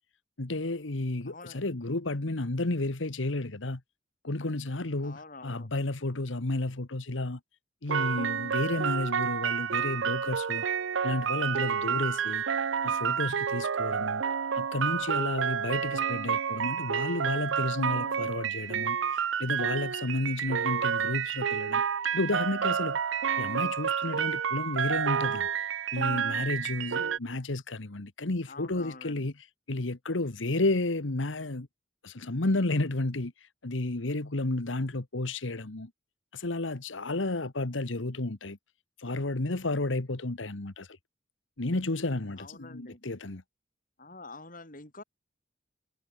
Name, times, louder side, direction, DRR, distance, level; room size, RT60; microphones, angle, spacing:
voice 1, 0.4-3.8 4.2-7.4 7.8-10.6 11.0-12.4 12.8-14.2 14.5-21.8 22.1-23.0 23.4-25.5 25.9-31.7 32.0-35.9 36.3-38.6 39.0-41.0 41.6-43.4, left 2 dB, 85° left, 1.5 m, -32 dB
voice 2, 1.3-1.7 5.0-5.7 17.8-18.6 28.5-29.3 42.4-43.0 44.0-45.0, left 3 dB, 45° left, 7.6 m, -47 dB
sound 1, 7.9-27.2, right 7 dB, 80° right, 0.6 m, -29 dB
head